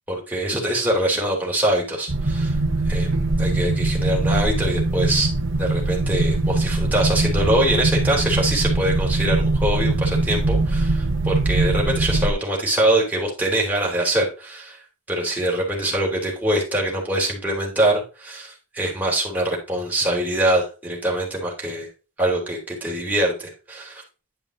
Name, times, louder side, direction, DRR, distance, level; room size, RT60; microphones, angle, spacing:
voice 1, 0.1-2.6 2.9-5.3 5.6-14.8 15.1-21.9 22.2-24.0, right 1 dB, 10° right, -3 dB, 3.4 m, -23 dB
sound 1, 2.1-12.3, right 2 dB, 60° right, 1.1 m, -22 dB
10.5 x 5.3 x 3.9 m, 0.33 s
head